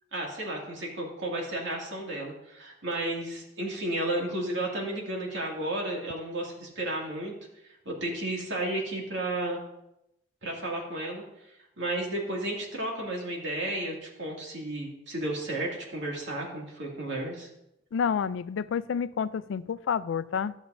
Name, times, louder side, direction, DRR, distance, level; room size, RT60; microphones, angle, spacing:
voice 1, 0.1-7.3 7.9-9.6 10.4-11.2 11.8-17.5, right 1 dB, 75° right, -1 dB, 2.2 m, -33 dB
voice 2, 17.9-20.5, left 6 dB, 85° left, 16 dB, 0.3 m, -29 dB
14.0 x 7.1 x 2.6 m, 0.85 s
head